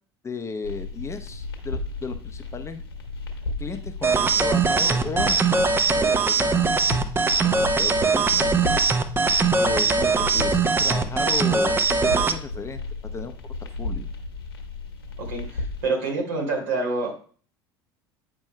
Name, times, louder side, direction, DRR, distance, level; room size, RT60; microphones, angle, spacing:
voice 1, 0.2-2.8 3.6-6.7 7.2-8.5 9.6-12.8 13.1-13.3 13.6-14.1, left 4 dB, 20° left, 8 dB, 0.6 m, -34 dB
sound 1, 0.6-15.8, left 3 dB, 80° left, 1.1 m, -34 dB
sound 2, 4.0-12.4, right 4 dB, 20° right, 0.6 m, -21 dB
voice 2, 15.3-17.1, right 3 dB, 65° right, 0 dB, 2.4 m, -27 dB
8.7 x 5.2 x 2.2 m, 0.42 s
figure-of-eight pair, 65°, 13 cm